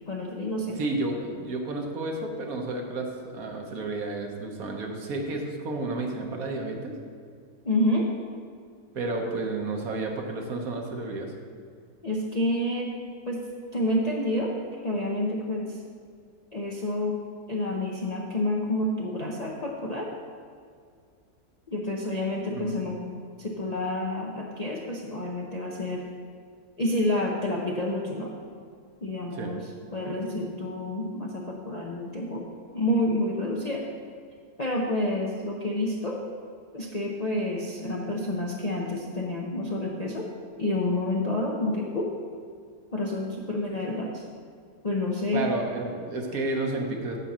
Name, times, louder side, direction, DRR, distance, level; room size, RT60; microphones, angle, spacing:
voice 1, 0.1-0.8 7.6-8.1 12.0-12.9 13.3-13.4 13.7-14.5 14.8-15.8 16.5-17.2 17.5-20.1 21.7-23.0 23.4-26.1 26.8-28.3 29.0-29.7 29.9-32.4 32.7-33.9 34.6-36.2 36.7-40.3 40.6-42.1 42.9-44.2 44.8-45.4, left 1 dB, 40° left, -2 dB, 0.6 m, -29 dB
voice 2, 0.8-6.9 8.9-11.3 22.5-22.8 29.3-29.5 45.3-47.2, right 2 dB, 60° right, 2 dB, 1.4 m, -31 dB
9.9 x 4.1 x 7.4 m, 2.1 s
omnidirectional pair, 1.7 m